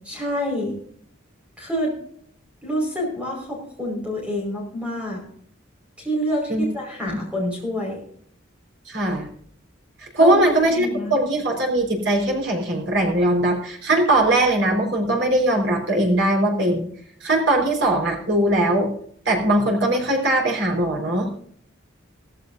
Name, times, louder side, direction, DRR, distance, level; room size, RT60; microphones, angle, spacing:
voice 1, 0.1-0.7 1.6-1.9 2.6-5.2 6.0-8.0 10.2-11.2, equal, 5° right, -1 dB, 5.1 m, -27 dB
voice 2, 8.9-9.3 10.1-16.9 17.2-18.9 19.3-21.4, right 1 dB, 65° right, 0 dB, 4.6 m, -20 dB
16.5 x 15.0 x 2.7 m, 0.62 s
head